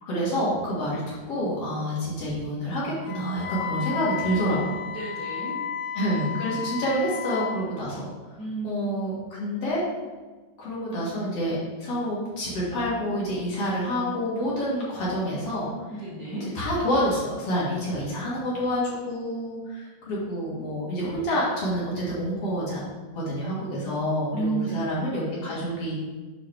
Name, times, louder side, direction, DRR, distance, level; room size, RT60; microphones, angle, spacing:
voice 1, 0.0-1.0 1.3-4.8 5.9-8.4 8.6-9.8 10.6-15.7 16.3-22.8 23.1-25.9, equal, 55° left, -7 dB, 2.4 m, -28 dB
Wind instrument woodwind instrument, 3.0-7.6, left 8 dB, 75° left, 1.9 m, -33 dB
voice 2, 4.9-5.5 8.4-8.9 15.9-16.4 24.3-24.8 25.1-25.2, right 3 dB, 45° right, -9 dB, 1.6 m, -32 dB
11.0 x 3.8 x 3.4 m, 1.3 s
omnidirectional pair, 3.6 m